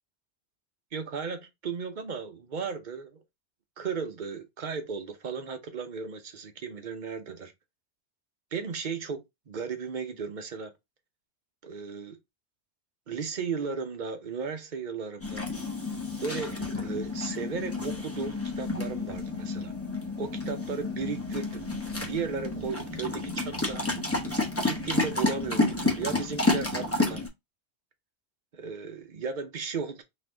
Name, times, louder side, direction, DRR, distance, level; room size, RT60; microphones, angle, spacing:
voice 1, 0.9-3.2 3.8-7.5 8.5-10.7 11.6-12.2 13.1-15.5 16.2-19.7 20.2-21.7 22.1-24.0 24.6-27.2 28.5-30.0, right 5 dB, 50° right, 0.8 m, -35 dB
sound 1, 15.2-27.3, left 2 dB, 15° left, 0.9 m, -30 dB
4.1 x 2.8 x 3.7 m
omnidirectional pair, 1.2 m